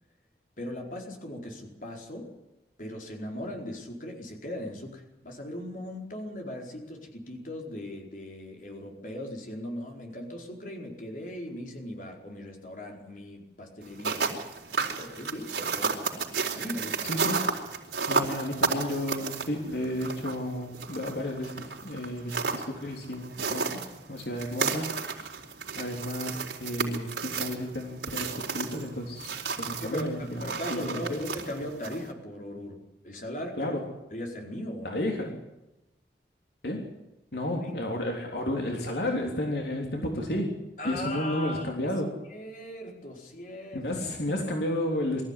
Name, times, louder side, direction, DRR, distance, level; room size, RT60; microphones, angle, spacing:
voice 1, 0.6-2.3 2.8-14.4 14.9-16.2 16.5-17.2 29.8-32.8 33.0-33.8 34.1-35.0 37.6-37.8 40.8-41.7 42.2-43.9, left 1 dB, 45° left, 1 dB, 4.6 m, -38 dB
sound 1, 13.8-32.1, right 5 dB, 85° right, 4.3 m, -33 dB
voice 2, 17.0-17.5 18.1-23.8 24.1-25.0 25.8-29.3 29.6-31.2 33.6-33.9 34.8-35.4 36.6-36.9 37.3-40.6 40.8-42.2 43.7-45.2, left 1 dB, 70° left, 1 dB, 3.5 m, -32 dB
23.5 x 14.5 x 9.9 m, 0.98 s
head